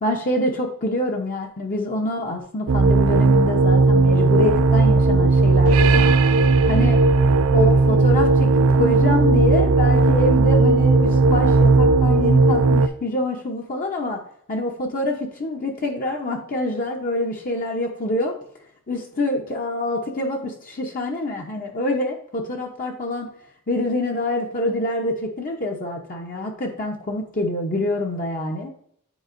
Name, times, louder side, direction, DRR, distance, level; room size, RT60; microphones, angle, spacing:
voice 1, 0.0-6.1 6.6-7.0 7.5-14.2 14.5-18.3 18.9-23.3 23.7-28.7, left 1 dB, 40° left, 1 dB, 0.7 m, -26 dB
sound 1, 2.7-12.9, right 3 dB, 65° right, 0.4 m, -16 dB
9.3 x 4.2 x 2.5 m, 0.67 s
head